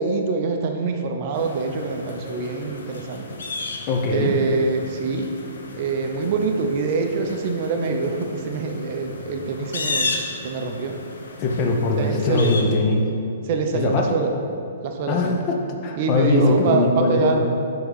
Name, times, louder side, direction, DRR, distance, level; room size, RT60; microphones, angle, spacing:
voice 1, 0.0-3.3 4.1-5.3 5.7-10.1 10.4-11.0 12.0-12.5 13.5-14.3 14.8-15.4 16.0-17.4, right 4 dB, 40° right, 4 dB, 0.5 m, -24 dB
sound 1, 1.3-12.6, left 3 dB, 85° left, 0.8 m, -34 dB
voice 2, 3.9-4.3 11.4-13.1 13.7-14.1 15.1-17.4, left 3 dB, 30° left, 2 dB, 0.7 m, -21 dB
5.8 x 3.6 x 5.6 m, 2.6 s
hypercardioid pair, 155°, 0 cm